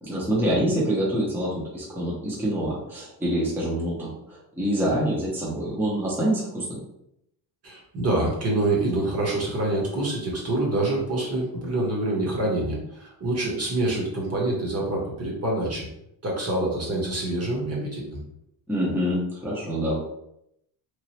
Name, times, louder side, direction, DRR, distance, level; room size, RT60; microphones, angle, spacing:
voice 1, 0.0-6.8 18.7-20.0, equal, 5° right, -6 dB, 0.7 m, -26 dB
voice 2, 7.6-15.9 16.2-18.2, right 2 dB, 35° right, -2 dB, 0.9 m, -26 dB
3.1 x 2.3 x 2.8 m, 0.78 s
cardioid pair, 125°, 46 cm